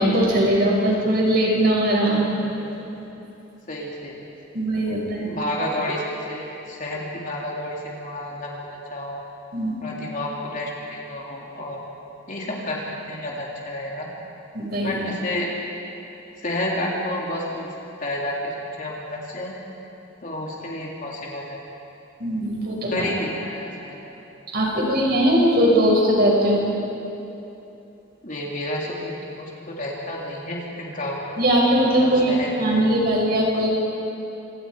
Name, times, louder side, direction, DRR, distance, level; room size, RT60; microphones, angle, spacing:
voice 1, 0.0-2.3 2.9-3.0 4.5-5.3 9.5-9.7 14.5-15.0 22.2-23.1 24.5-26.7 31.4-33.7, right 1 dB, 50° right, -2 dB, 6.2 m, -20 dB
voice 2, 2.1-2.5 3.7-4.2 5.2-9.2 9.8-11.8 12.3-14.1 14.8-15.5 16.4-17.7 18.0-19.5 20.2-21.6 22.9-24.2 28.2-31.4 32.0-32.9, left 1 dB, 40° left, -3 dB, 3.4 m, -30 dB
28.0 x 27.5 x 5.0 m, 2.9 s
head